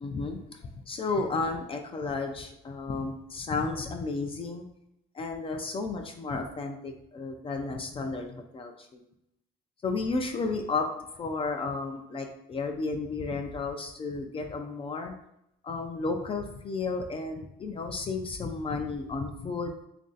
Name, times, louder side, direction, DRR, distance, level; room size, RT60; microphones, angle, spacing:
voice 1, 0.0-4.7 5.1-9.0 9.8-10.9 11.2-15.1 15.6-19.9, left 3 dB, 35° left, 4 dB, 0.4 m, -33 dB
3.0 x 2.5 x 3.9 m, 0.79 s
cardioid pair, 110°, 17 cm